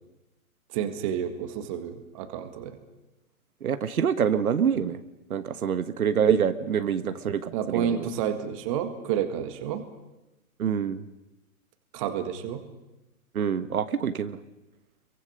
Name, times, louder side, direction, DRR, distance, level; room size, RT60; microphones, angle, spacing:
voice 1, 0.7-2.8 7.5-9.8 11.9-12.6, right 9 dB, 25° right, 8 dB, 1.8 m, -30 dB
voice 2, 3.6-5.0 5.3-8.1 10.6-11.1 13.3-14.4, right 7 dB, 80° right, 11 dB, 1.6 m, -26 dB
29.0 x 23.5 x 6.6 m, 0.99 s
hypercardioid pair, 165°, 43 cm